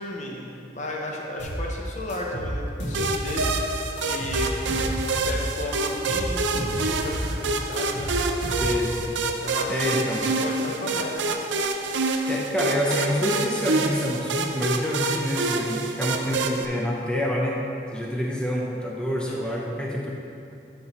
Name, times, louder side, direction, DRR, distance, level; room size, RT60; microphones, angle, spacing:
voice 1, 0.0-3.8 4.1-8.0 9.2-11.3 19.3-19.6, left 1 dB, 40° left, -1 dB, 0.7 m, -34 dB
sound 1, 1.4-1.6 2.1-3.5 4.0-5.4 5.8-7.3 7.7-8.9, equal, 75° left, 1.6 m, -31 dB
sound 2, 2.9-16.7, right 3 dB, 80° right, 0.5 m, -27 dB
voice 2, 8.6-9.1 9.7-10.3 12.3-17.6 17.9-20.1, equal, 5° left, -2 dB, 0.6 m, -27 dB
12.0 x 5.3 x 3.0 m, 2.7 s
head